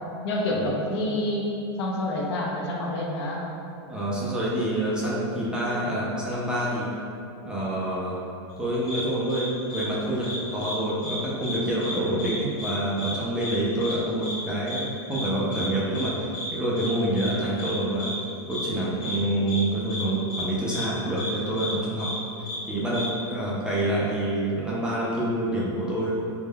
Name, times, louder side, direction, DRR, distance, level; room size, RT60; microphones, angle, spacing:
voice 1, 0.2-1.5 1.8-3.5, left 1 dB, 75° left, -2 dB, 0.6 m, -27 dB
voice 2, 3.9-6.9 7.4-8.2 8.6-18.1 18.5-22.1 22.7-26.2, right 1 dB, 5° right, -7 dB, 0.3 m, -27 dB
sound 1, 8.9-9.0 9.3-9.4 9.7-9.8 10.2-10.7 11.0-11.2 11.4-11.9 12.2-12.3 12.6-12.7 13.0-13.1 13.4-13.5 13.8-13.9 14.2-14.4 14.7-14.8 15.1-15.2 15.5-15.6 15.9-16.1 16.3-16.5 16.8-16.9 17.2-17.3 17.6-17.7 18.0-18.1 18.5-18.6 19.0-19.1 19.5-19.6 19.9-20.0 20.3-20.4 20.7-20.8 21.2-21.3 21.6-21.7 22.0-22.1 22.5-22.6 22.9-23.1, left 1 dB, 25° left, 1.0 m, -33 dB
2.2 x 2.1 x 3.2 m, 2.7 s
supercardioid pair, 145°, 14 cm